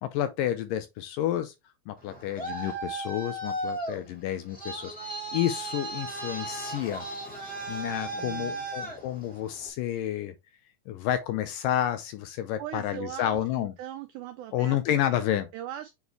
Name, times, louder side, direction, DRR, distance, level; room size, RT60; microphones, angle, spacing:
voice 1, 0.0-1.5 1.9-4.9 5.3-7.1 7.7-10.3 10.9-13.7 14.5-15.5, left 11 dB, 80° left, 2.1 m, -30 dB
Traffic noise roadway noise, 2.0-9.7, right 2 dB, 5° left, 0.7 m, -36 dB
voice 2, 8.1-8.7 12.6-14.8 15.1-15.9, right 11 dB, 90° right, 1.8 m, -40 dB
7.0 x 4.2 x 3.2 m
omnidirectional pair, 4.3 m